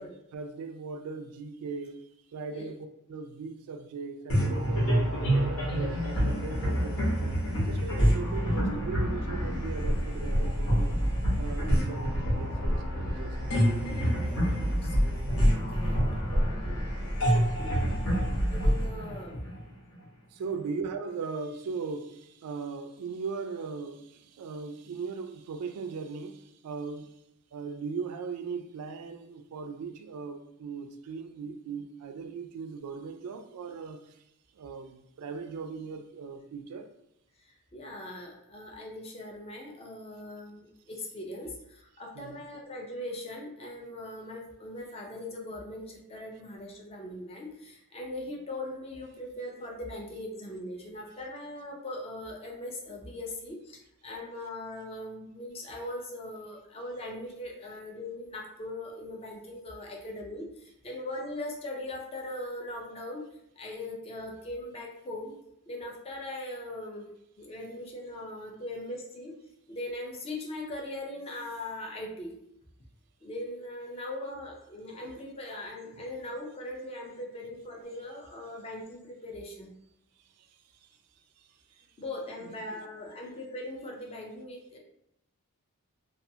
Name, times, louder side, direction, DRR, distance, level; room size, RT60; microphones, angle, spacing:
voice 1, 0.0-2.0 2.3-7.3 7.7-11.0 11.3-12.5 12.9-13.4 20.3-27.1 27.5-34.2 34.5-36.9 42.2-42.4 75.9-76.0 80.4-80.5 80.8-80.9 81.4-81.5 81.8-81.9 82.4-82.5, right 5 dB, 90° right, 0.3 m, -39 dB
sound 1, 4.3-19.9, equal, 60° left, 1.0 m, -27 dB
voice 2, 14.1-16.0 18.5-19.4 20.6-20.7 37.4-63.2 63.6-65.3 65.7-67.1 67.4-69.3 69.7-72.4 73.2-79.7 82.0-84.8, left 1 dB, 25° left, 0.4 m, -40 dB
2.4 x 2.3 x 2.7 m
head